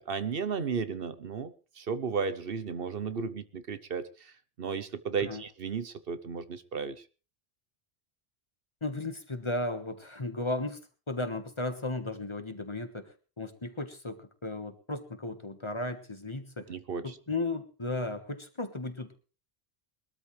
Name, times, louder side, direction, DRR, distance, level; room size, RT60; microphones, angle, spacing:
voice 1, 0.0-7.0 16.7-17.2, right 5 dB, 65° right, 13 dB, 1.1 m, -34 dB
voice 2, 8.8-10.8 11.1-16.7 17.0-19.3, left 2 dB, 30° left, 8 dB, 1.5 m, -35 dB
22.0 x 13.0 x 3.3 m, 0.34 s
omnidirectional pair, 1.0 m